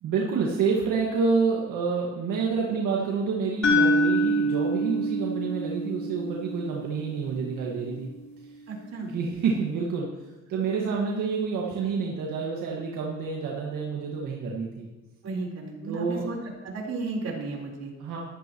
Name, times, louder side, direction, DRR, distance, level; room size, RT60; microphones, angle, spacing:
voice 1, 0.0-8.1 9.1-10.1 10.5-14.9 15.9-16.3 18.0-18.2, right 5 dB, 85° right, -3 dB, 1.8 m, -28 dB
sound 1, 3.6-7.7, equal, 60° left, 3.4 m, -26 dB
voice 2, 8.7-9.1 15.2-16.4 16.6-17.9, right 3 dB, 60° right, -2 dB, 4.1 m, -34 dB
14.5 x 13.0 x 3.1 m, 1.1 s
cardioid pair, 90°, 30 cm